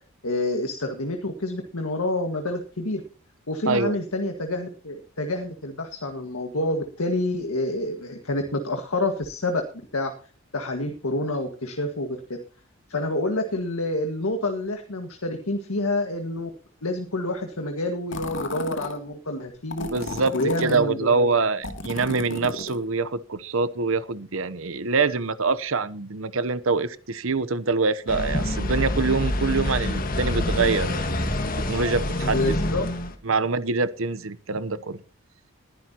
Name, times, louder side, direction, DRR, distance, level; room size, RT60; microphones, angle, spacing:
voice 1, 0.2-3.0 3.5-9.6 9.9-10.1 10.5-12.2 12.9-16.5 16.8-19.9 20.3-21.3 32.2-32.9, left 2 dB, 90° left, 5 dB, 1.8 m, -28 dB
sound 1, 18.1-19.0 19.7-20.8 21.6-22.8, left 2 dB, 60° left, 2.4 m, -34 dB
voice 2, 19.9-20.3 20.6-31.3 31.6-32.5 33.2-35.0, right 4 dB, 70° right, 15 dB, 0.9 m, -25 dB
sound 2, 28.1-33.1, left 1 dB, 40° left, 1.6 m, -26 dB
20.5 x 10.5 x 3.0 m, 0.36 s
head